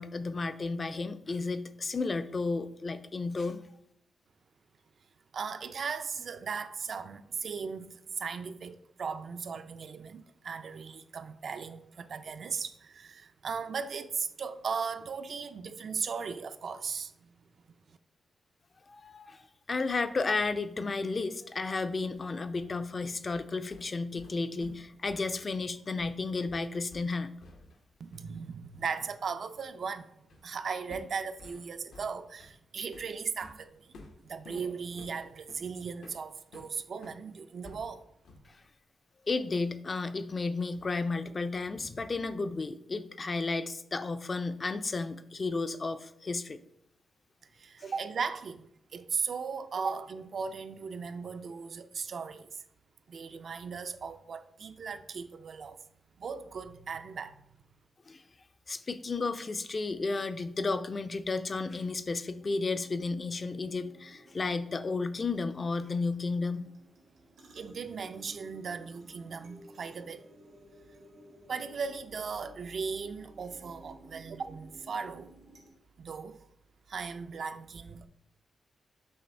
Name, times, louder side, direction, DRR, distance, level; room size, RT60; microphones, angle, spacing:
voice 1, 0.0-3.6 18.9-27.3 38.5-38.6 39.3-46.6 58.1-58.2 58.7-66.7, left 3 dB, 40° left, 0.3 m, -33 dB
voice 2, 5.3-17.1 17.9-18.0 28.0-30.1 30.4-33.9 34.2-38.1 47.4-52.6 53.1-55.8 56.2-57.4 67.5-70.3 71.5-75.3 76.0-76.4 76.9-78.1, right 5 dB, 60° right, 0.3 m, -37 dB
sound 1, 21.9-27.9 28.1-28.4 30.3-30.5 30.9-37.2 37.6-38.6, left 2 dB, 80° left, 0.6 m, -53 dB
sound 2, 62.4-75.7, right 1 dB, 90° right, 1.2 m, -56 dB
6.3 x 2.6 x 3.2 m
cardioid pair, 70°, 0 cm